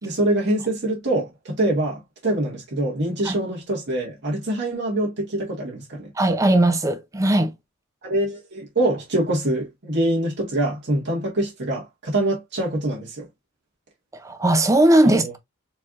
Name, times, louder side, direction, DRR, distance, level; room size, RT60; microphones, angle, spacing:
voice 1, 0.0-6.1 8.0-13.3 15.0-15.3, right 1 dB, 55° right, 1.5 m, -24 dB
voice 2, 6.2-7.5 14.1-15.4, right 1 dB, 15° right, 0.4 m, -18 dB
4.3 x 3.2 x 2.4 m
head